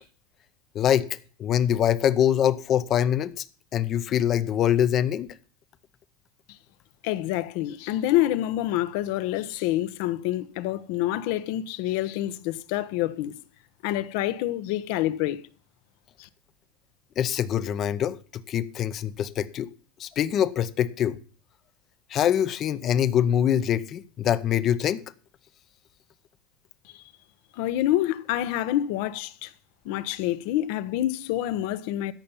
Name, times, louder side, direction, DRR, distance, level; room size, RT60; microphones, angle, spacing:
voice 1, 0.7-3.4 3.7-5.3 17.2-19.7 20.0-21.2 22.1-25.0, left 10 dB, 35° left, 0.8 m, -24 dB
voice 2, 7.0-13.3 13.8-15.4 16.2-16.3 26.8-27.1 27.5-29.5 29.8-32.1, left 14 dB, 65° left, 0.9 m, -27 dB
13.0 x 5.4 x 7.1 m
supercardioid pair, 140°, 0 cm